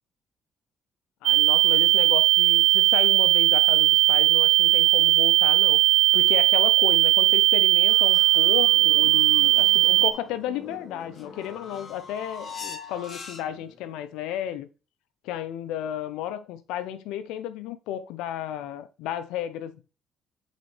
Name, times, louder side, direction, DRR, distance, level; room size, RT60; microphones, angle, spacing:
voice 1, 1.2-5.8 6.1-14.7 15.2-19.8, left 11 dB, 90° left, 0.6 m, -33 dB
sound 1, 1.3-10.1, right 16 dB, 80° right, 0.4 m, -18 dB
sound 2, 7.9-13.8, left 5 dB, 50° left, 1.3 m, -42 dB
7.8 x 4.0 x 3.2 m
supercardioid pair, 75°, 0 cm